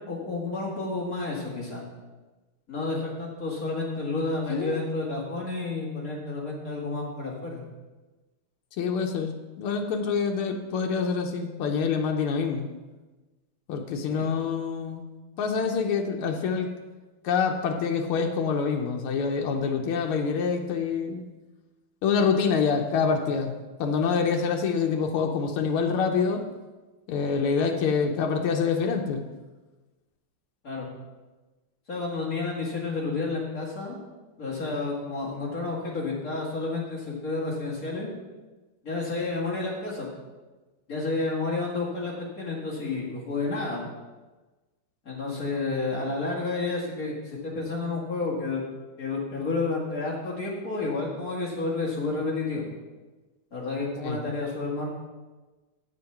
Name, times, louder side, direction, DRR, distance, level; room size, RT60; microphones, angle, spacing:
voice 1, 0.1-1.8 2.7-7.6 14.1-14.2 30.6-30.9 31.9-34.0 34.4-38.1 38.8-40.1 40.9-43.8 45.1-48.6 49.0-52.7 53.5-54.9, left 3 dB, 40° left, -4 dB, 2.3 m, -30 dB
voice 2, 4.5-4.8 8.8-12.7 13.7-15.1 15.4-16.7 17.2-21.2 22.0-26.4 27.1-29.2 54.0-54.2, left 5 dB, 85° left, 3 dB, 1.7 m, -26 dB
8.5 x 6.7 x 5.8 m, 1.2 s
omnidirectional pair, 2.3 m